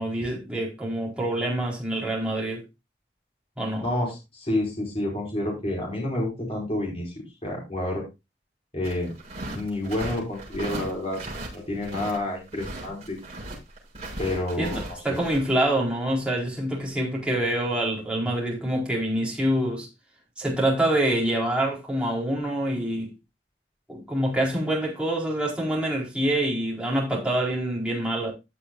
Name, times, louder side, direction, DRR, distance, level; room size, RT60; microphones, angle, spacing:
voice 1, 0.0-2.6 3.6-3.9 14.6-19.9 20.4-23.1 23.9-28.3, right 1 dB, 5° right, 4.4 m, -26 dB
voice 2, 3.8-7.1 7.4-8.0 8.7-9.1 9.4-11.2 11.7-13.2 14.2-14.8 15.1-15.2, left 1 dB, 35° left, 5.2 m, -29 dB
sound 1, 8.8-12.2 12.5-15.5, right 1 dB, 35° right, 7.4 m, -37 dB
16.0 x 7.0 x 2.6 m
head